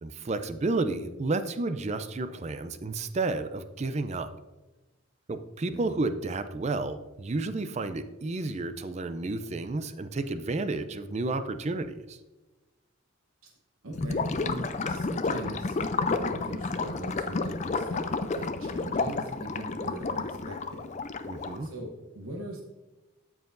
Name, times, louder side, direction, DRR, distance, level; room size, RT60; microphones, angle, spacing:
voice 1, 0.0-4.3 5.3-12.2 21.3-21.7, right 3 dB, 30° right, 10 dB, 0.4 m, -31 dB
voice 2, 13.8-18.0 18.3-20.9 21.6-22.6, right 1 dB, 90° right, 0 dB, 1.0 m, -40 dB
Gurgling / Liquid, 13.9-21.7, left 3 dB, 35° left, 0.4 m, -31 dB
13.0 x 4.8 x 2.6 m, 1.1 s
head